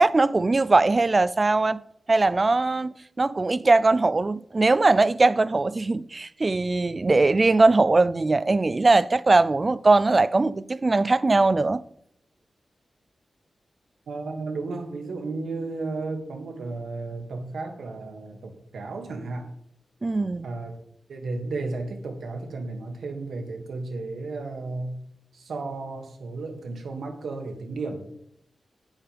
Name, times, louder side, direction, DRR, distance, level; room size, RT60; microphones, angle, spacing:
voice 1, 0.0-1.8 2.1-11.8 20.0-20.5, right 3 dB, 40° right, 0.5 m, -20 dB
voice 2, 14.1-19.5 20.4-20.7 21.1-25.0 25.3-28.0, right 3 dB, 85° right, 2.2 m, -33 dB
11.0 x 9.0 x 3.5 m
cardioid pair, 60°, 0 cm